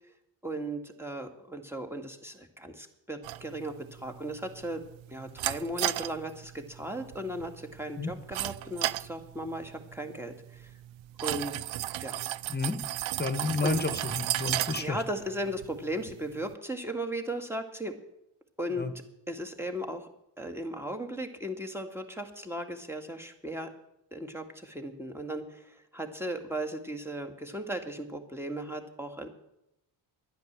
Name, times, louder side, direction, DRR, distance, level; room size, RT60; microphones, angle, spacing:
voice 1, 0.4-4.8 5.1-10.7 11.2-11.6 12.0-12.2 13.6-14.0 14.8-17.9 18.6-18.9 19.3-20.1 20.4-23.7 24.1-29.3, right 1 dB, 5° right, 4 dB, 2.0 m, -36 dB
sound 1, 3.2-16.5, right 15 dB, 80° right, 0.5 m, -36 dB
voice 2, 13.2-15.0 18.8-18.9, left 3 dB, 20° left, 11 dB, 1.5 m, -30 dB
10.5 x 10.0 x 7.4 m, 0.83 s
cardioid pair, 60°, 45 cm